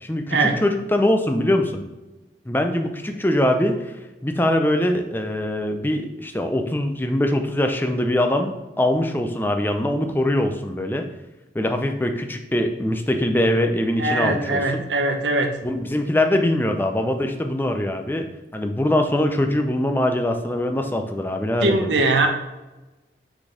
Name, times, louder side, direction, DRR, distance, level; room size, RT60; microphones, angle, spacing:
voice 1, 0.0-1.8 2.5-3.9 4.2-11.0 11.5-14.8 15.6-18.3 18.5-22.0, left 1 dB, 10° left, 5 dB, 0.5 m, -22 dB
voice 2, 14.0-15.5 21.6-22.3, right 2 dB, 85° right, 4 dB, 0.9 m, -21 dB
6.2 x 4.0 x 5.0 m, 1.1 s
head